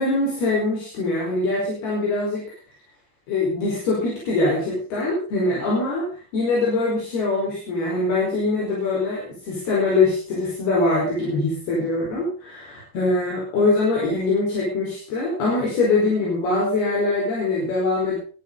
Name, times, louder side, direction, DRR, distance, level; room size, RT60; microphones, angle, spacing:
voice 1, 0.0-2.5 3.3-6.1 6.3-18.2, left 2 dB, 65° left, -4 dB, 6.9 m, -23 dB
21.5 x 12.5 x 4.0 m, 0.38 s
omnidirectional pair, 4.9 m